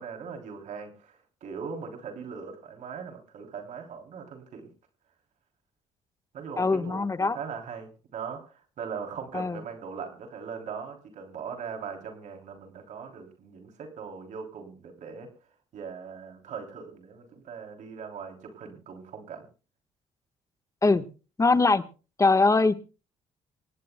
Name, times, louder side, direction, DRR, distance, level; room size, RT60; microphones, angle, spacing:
voice 1, 0.0-4.7 6.3-15.3 15.7-19.5, right 6 dB, 65° right, 3 dB, 3.2 m, -40 dB
voice 2, 6.6-7.4 9.3-9.6 20.8-21.0 21.4-21.8 22.2-22.8, left 3 dB, 25° left, 10 dB, 1.3 m, -22 dB
26.5 x 18.0 x 2.2 m, 0.36 s
supercardioid pair, 65°, 13 cm